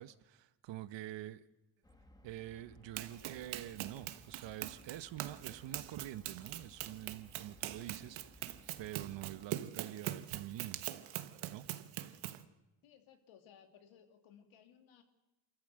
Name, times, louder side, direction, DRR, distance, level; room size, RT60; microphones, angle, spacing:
voice 1, 0.0-1.4 2.2-8.5 8.8-10.9 11.5-11.7, right 13 dB, 70° right, 1.1 m, -46 dB
sound 1, 1.8-9.5, left 1 dB, 10° left, 1.8 m, -61 dB
Run, 3.0-12.5, right 14 dB, 85° right, 1.3 m, -43 dB
voice 2, 12.8-15.0, left 8 dB, 80° left, 2.9 m, -61 dB
26.0 x 14.5 x 7.7 m
cardioid pair, 115°, 46 cm